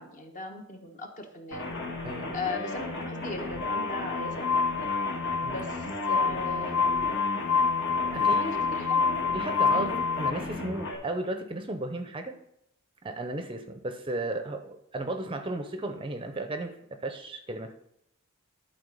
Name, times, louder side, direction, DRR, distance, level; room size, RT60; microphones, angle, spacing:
voice 1, 0.0-1.6 2.3-4.9 5.5-7.2 8.1-9.2 9.7-10.3, left 2 dB, 35° left, 4 dB, 1.1 m, -38 dB
sound 1, 1.5-10.9, left 2 dB, 55° left, 1.7 m, -35 dB
voice 2, 2.0-2.4 5.4-5.6 8.1-8.5 9.3-12.4 13.0-17.7, right 2 dB, 25° right, 7 dB, 0.6 m, -34 dB
Glass, 3.6-10.3, left 5 dB, 75° left, 0.3 m, -27 dB
11.0 x 4.3 x 5.3 m, 0.78 s
head